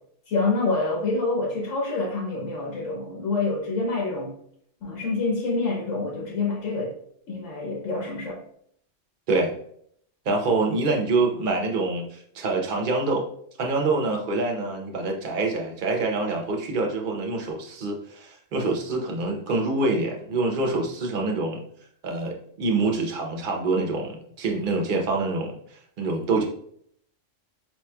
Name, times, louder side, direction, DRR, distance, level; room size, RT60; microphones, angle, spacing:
voice 1, 0.3-4.3 4.8-6.9 7.3-8.4, left 3 dB, 90° left, -2 dB, 1.3 m, -27 dB
voice 2, 10.3-13.3 13.6-21.6 22.0-25.6 26.0-26.5, right 3 dB, 50° right, 1 dB, 0.7 m, -26 dB
4.5 x 3.0 x 2.2 m, 0.66 s
omnidirectional pair, 1.3 m